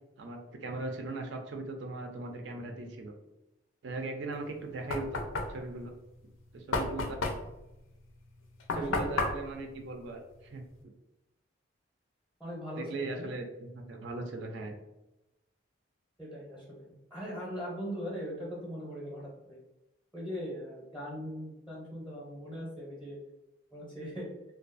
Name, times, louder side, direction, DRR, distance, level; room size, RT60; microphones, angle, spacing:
voice 1, 0.2-3.1 3.8-5.2 5.5-5.9 6.5-7.2 8.7-10.9 12.8-14.8, right 2 dB, 60° right, 3 dB, 0.4 m, -39 dB
Knock, 4.4-10.8, left 3 dB, 85° left, 0.4 m, -35 dB
voice 2, 8.7-9.2 12.4-13.3 16.2-19.6 20.1-23.2 23.7-24.3, equal, ahead, -5 dB, 0.5 m, -40 dB
2.4 x 2.2 x 2.4 m, 0.95 s
head